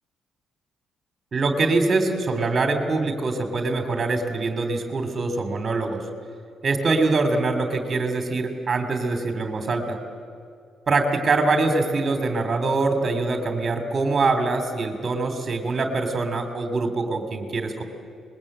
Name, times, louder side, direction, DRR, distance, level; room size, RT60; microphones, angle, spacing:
voice 1, 1.3-6.0 6.6-10.0 10.9-17.8, right 3 dB, 30° right, 7 dB, 3.1 m, -24 dB
25.5 x 21.5 x 8.8 m, 2.4 s
cardioid pair, 170°, 0 cm